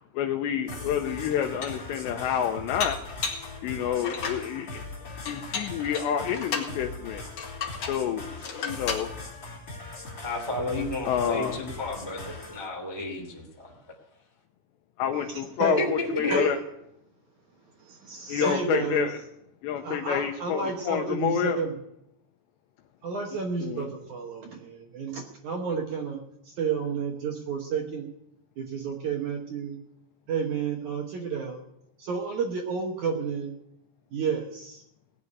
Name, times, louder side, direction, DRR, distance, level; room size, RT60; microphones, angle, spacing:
voice 1, 0.0-3.0 3.6-5.0 5.2-7.2 7.9-9.2 11.1-11.6 15.0-16.6 18.3-19.2 19.6-21.6 23.6-23.9, left 9 dB, 80° left, 3 dB, 2.9 m, -28 dB
Dishes pots and pans, 0.7-0.8 1.3-1.9 2.8-3.5 4.0-4.5 5.3-6.7 7.4-8.0 8.4-9.1, left 5 dB, 50° left, 1.9 m, -33 dB
sound 1, 0.7-12.7, left 3 dB, 25° left, 2.6 m, -41 dB
voice 2, 10.2-13.7 15.7-16.5, left 1 dB, 10° right, 0 dB, 1.1 m, -32 dB
voice 3, 15.1-15.9 16.3-16.6 17.9-19.3 19.8-21.8 23.0-28.1 28.6-29.8 30.3-31.6 32.0-33.5 34.1-34.8, right 5 dB, 75° right, 2 dB, 1.8 m, -31 dB
18.0 x 6.8 x 9.9 m, 0.82 s
omnidirectional pair, 5.2 m